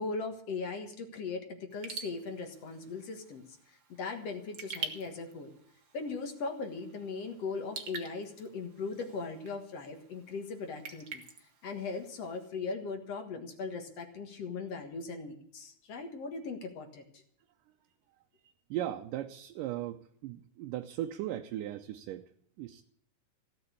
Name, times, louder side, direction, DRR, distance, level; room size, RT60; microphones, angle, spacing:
voice 1, 0.0-3.4 3.7-5.5 5.9-11.2 11.6-17.0, left 4 dB, 55° left, 5 dB, 2.4 m, -39 dB
Raindrop / Drip, 1.7-12.5, right 5 dB, 45° right, 1.8 m, -47 dB
voice 2, 18.4-22.3 22.6-22.8, right 12 dB, 80° right, 5 dB, 2.3 m, -38 dB
16.5 x 7.8 x 8.4 m, 0.63 s
omnidirectional pair, 3.9 m